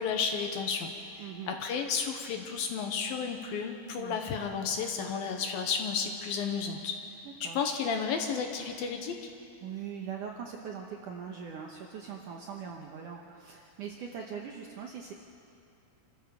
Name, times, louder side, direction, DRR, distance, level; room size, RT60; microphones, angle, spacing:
voice 1, 0.0-7.0 7.4-9.2, left 6 dB, 70° left, 4 dB, 2.5 m, -32 dB
voice 2, 1.2-1.6 4.0-4.2 7.2-7.6 9.6-15.1, right 7 dB, 75° right, 1 dB, 1.9 m, -41 dB
27.0 x 13.5 x 7.0 m, 2.6 s
omnidirectional pair, 4.9 m